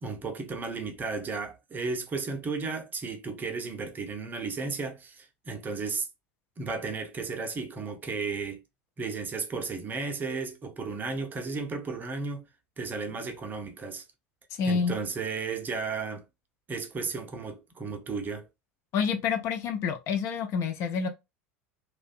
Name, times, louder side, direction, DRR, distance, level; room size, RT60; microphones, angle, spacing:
voice 1, 0.0-6.1 6.6-8.6 9.0-12.5 12.8-14.0 14.7-16.2 16.7-18.5, right 4 dB, 25° right, 0.6 m, -34 dB
voice 2, 14.6-14.9 18.9-21.1, left 6 dB, 40° left, 0.5 m, -28 dB
2.5 x 2.1 x 2.4 m
figure-of-eight pair, 75°, 7 cm